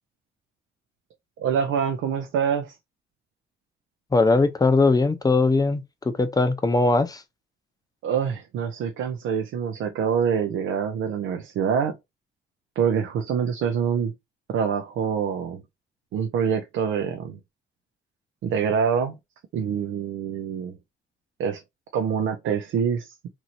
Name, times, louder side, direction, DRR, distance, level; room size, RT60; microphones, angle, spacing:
voice 1, 1.4-2.8 8.0-12.0 12.8-14.1 14.5-15.6 16.1-17.4 18.4-19.2 19.5-20.7 21.4-21.6 21.9-23.1, right 7 dB, 80° right, 0.6 m, -25 dB
voice 2, 4.1-7.2, left 3 dB, 20° left, 0.6 m, -20 dB
3.0 x 2.7 x 2.5 m
cardioid pair, 90°, 20 cm